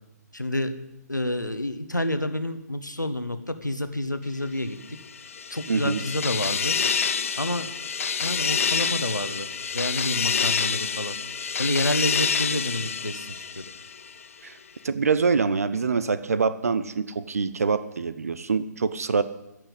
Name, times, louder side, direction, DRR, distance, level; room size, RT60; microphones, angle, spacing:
voice 1, 0.3-0.7 1.1-4.8 5.5-6.8 7.4-7.7 8.2-9.5 9.7-11.2 11.6-13.6, left 1 dB, 85° left, 9 dB, 1.4 m, -29 dB
sound 1, 5.0-14.1, left 6 dB, 50° left, 0.7 m, -27 dB
voice 2, 5.7-6.0 14.4-14.6 14.8-19.2, right 5 dB, 55° right, 14 dB, 0.7 m, -25 dB
14.5 x 6.0 x 9.7 m, 0.91 s
figure-of-eight pair, 140°, 10 cm